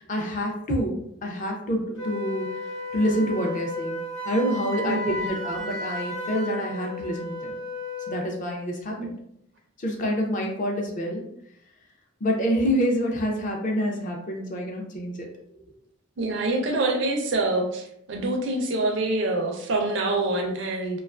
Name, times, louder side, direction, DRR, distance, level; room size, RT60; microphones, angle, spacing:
voice 1, 0.1-2.5 2.9-4.0 4.3-7.5 8.1-9.2 9.8-11.2 12.2-15.3, equal, 35° left, 1 dB, 0.4 m, -27 dB
Wind instrument woodwind instrument, 2.0-8.3, left 2 dB, 75° left, 0.8 m, -33 dB
voice 2, 4.8-5.4 9.0-9.1 16.2-21.0, right 2 dB, 55° right, 2 dB, 0.4 m, -26 dB
2.3 x 2.3 x 2.3 m, 0.74 s
head